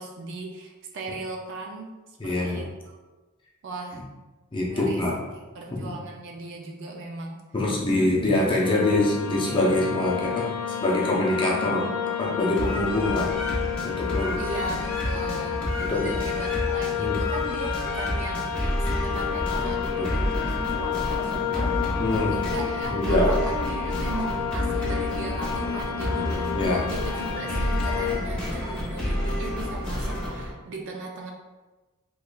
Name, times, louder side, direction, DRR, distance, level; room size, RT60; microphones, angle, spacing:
voice 1, 0.0-1.9 2.2-3.0 3.6-4.0 4.7-5.0 5.3-7.4 14.4-21.7 22.3-26.5 26.9-31.3, right 3 dB, 60° right, 0 dB, 0.4 m, -37 dB
voice 2, 2.2-2.6 4.5-5.2 5.7-5.9 7.5-11.9 12.2-14.4 15.8-16.1 17.0-17.2 19.9-20.1 22.0-22.3 22.9-23.3 26.5-26.9, left 1 dB, 25° left, -4 dB, 0.5 m, -25 dB
sound 1, 8.6-28.2, left 9 dB, 75° left, 0.5 m, -31 dB
sound 2, 8.6-15.6, left 4 dB, 85° right, 0.9 m, -41 dB
sound 3, 12.6-30.5, left 1 dB, 5° left, 0.9 m, -30 dB
3.6 x 3.0 x 2.3 m, 1.2 s
head